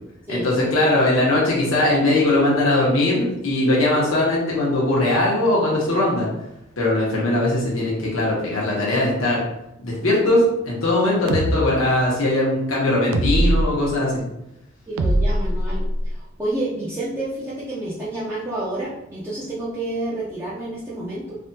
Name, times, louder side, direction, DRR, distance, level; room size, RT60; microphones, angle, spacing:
voice 1, 0.3-6.3 6.8-9.4 9.8-14.2, left 1 dB, 80° left, -5 dB, 0.9 m, -20 dB
sound 1, 11.3-11.5 13.1-13.7 15.0-16.1, right 1 dB, 85° right, 0.3 m, -20 dB
voice 2, 14.9-21.4, right 1 dB, 10° right, -9 dB, 0.5 m, -29 dB
3.3 x 2.2 x 2.7 m, 0.85 s
head